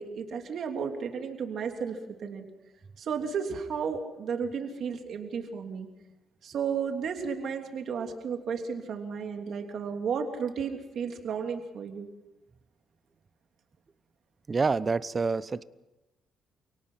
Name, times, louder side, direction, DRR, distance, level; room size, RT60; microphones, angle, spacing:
voice 1, 0.0-2.4 3.0-5.9 6.4-12.1, right 6 dB, 65° right, 4 dB, 3.2 m, -33 dB
voice 2, 14.5-15.6, right 4 dB, 30° right, 16 dB, 0.8 m, -27 dB
28.5 x 18.0 x 5.8 m, 0.99 s
cardioid pair, 90°, 0 cm